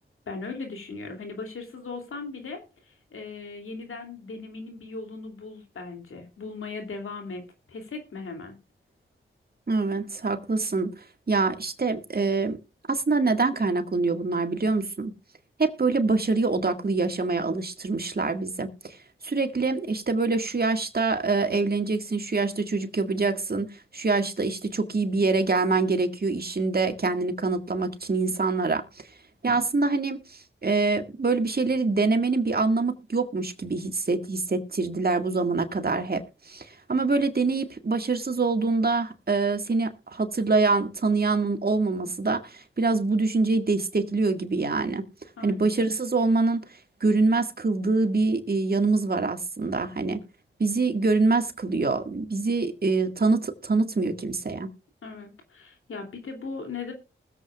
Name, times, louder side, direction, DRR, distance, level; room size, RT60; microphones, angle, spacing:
voice 1, 0.3-8.5 45.4-45.6 55.0-56.9, left 4 dB, 85° left, 2.8 m, -38 dB
voice 2, 9.7-10.9 11.3-12.6 12.9-15.1 15.6-19.0 19.2-28.8 29.4-45.1 45.4-46.6 47.0-50.2 50.6-54.7, right 3 dB, 45° right, 1.9 m, -25 dB
20.5 x 8.0 x 2.4 m
cardioid pair, 45°, 21 cm